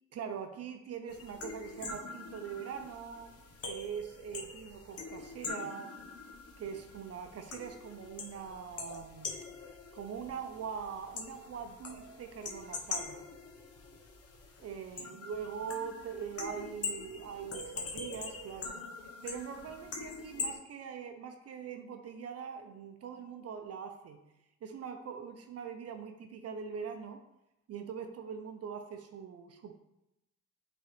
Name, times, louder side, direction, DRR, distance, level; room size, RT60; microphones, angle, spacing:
voice 1, 0.1-3.3 3.7-5.9 6.6-9.3 9.9-13.2 14.6-18.8 19.2-24.2 24.6-27.2 27.7-29.7, right 7 dB, 55° right, 6 dB, 0.6 m, -42 dB
sound 1, 1.1-20.6, left 4 dB, 50° left, 1.1 m, -43 dB
8.1 x 3.9 x 3.3 m, 0.89 s
cardioid pair, 90°, 30 cm